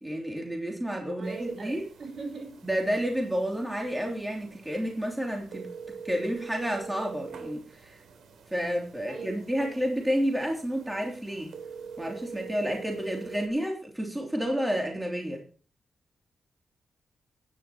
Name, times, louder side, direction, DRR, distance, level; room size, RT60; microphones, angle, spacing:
voice 1, 0.0-1.8 2.6-5.7 6.0-8.0 8.5-11.5 12.0-15.4, equal, 5° right, 1 dB, 3.2 m, -30 dB
voice 2, 1.1-2.5 9.1-9.8, right 4 dB, 45° right, 6 dB, 4.4 m, -41 dB
sound 1, 1.2-13.5, right 6 dB, 85° right, 3.5 m, -45 dB
15.5 x 11.0 x 3.1 m, 0.39 s
wide cardioid pair, 130°, 0 cm